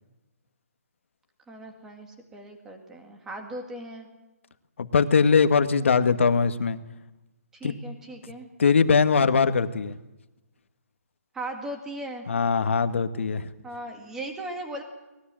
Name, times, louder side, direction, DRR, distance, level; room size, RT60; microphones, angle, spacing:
voice 1, 1.5-4.1 7.5-8.5 11.3-12.3 13.6-14.8, right 1 dB, 5° right, 4 dB, 2.1 m, -38 dB
voice 2, 4.8-6.8 7.6-7.8 8.6-9.9 12.3-13.5, left 5 dB, 50° left, 10 dB, 1.6 m, -21 dB
24.0 x 20.5 x 7.7 m, 1.0 s
hypercardioid pair, 175°, 8 cm